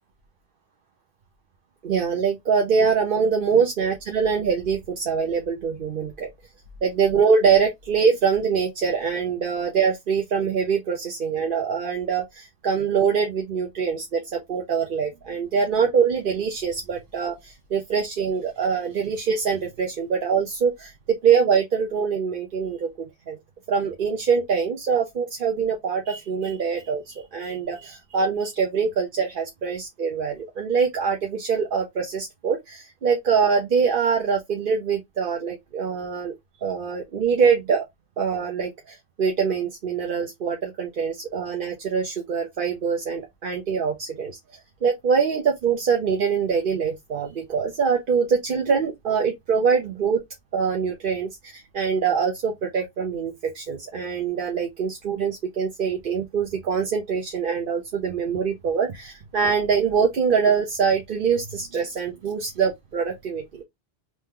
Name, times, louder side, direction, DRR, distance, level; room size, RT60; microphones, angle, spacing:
voice 1, 1.8-6.3 6.8-23.4 23.7-36.3 36.6-37.8 38.2-44.4 44.8-50.2 50.5-63.6, right 6 dB, 60° right, 0.9 m, -24 dB
3.1 x 2.7 x 3.7 m
omnidirectional pair, 1.0 m